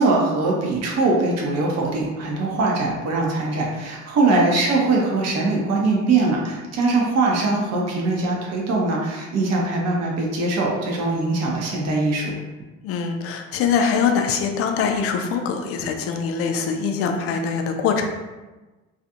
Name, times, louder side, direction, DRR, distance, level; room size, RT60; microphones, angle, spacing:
voice 1, 0.0-12.3, right 3 dB, 40° right, -2 dB, 0.7 m, -21 dB
voice 2, 12.8-18.1, left 6 dB, 40° left, 4 dB, 0.4 m, -23 dB
2.4 x 2.4 x 2.7 m, 1.2 s
figure-of-eight pair, 60°, 38 cm